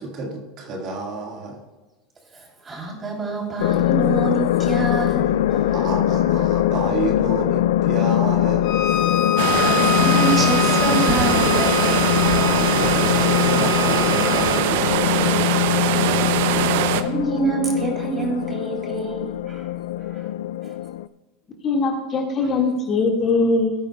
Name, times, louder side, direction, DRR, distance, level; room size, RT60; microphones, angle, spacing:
voice 1, 0.0-1.6 5.7-8.7 12.4-14.9, right 3 dB, 45° right, 0 dB, 1.9 m, -30 dB
voice 2, 2.3-5.9 9.5-12.1 16.9-19.6 20.1-20.3 20.6-20.7, right 3 dB, 20° right, 0 dB, 3.3 m, -27 dB
sound 1, 3.6-21.1, left 13 dB, 80° left, 0.3 m, -22 dB
Bowed string instrument, 8.6-14.7, left 8 dB, 50° left, 0.9 m, -27 dB
sound 2, 9.4-17.0, right 10 dB, 70° right, 0.6 m, -22 dB
voice 3, 21.6-23.8, left 3 dB, 30° left, 1 dB, 1.9 m, -21 dB
18.0 x 9.0 x 2.3 m, 1.2 s
supercardioid pair, 125°, 0 cm